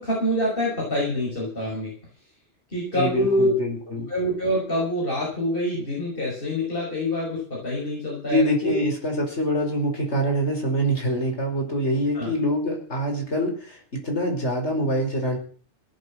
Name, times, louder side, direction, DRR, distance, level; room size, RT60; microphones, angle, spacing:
voice 1, 0.0-1.9 2.7-3.5 4.1-8.8 12.1-12.3, left 1 dB, 50° left, -4 dB, 6.1 m, -25 dB
voice 2, 2.9-4.1 8.3-15.4, equal, 75° left, 2 dB, 5.5 m, -25 dB
18.0 x 8.4 x 7.6 m, 0.44 s
omnidirectional pair, 1.2 m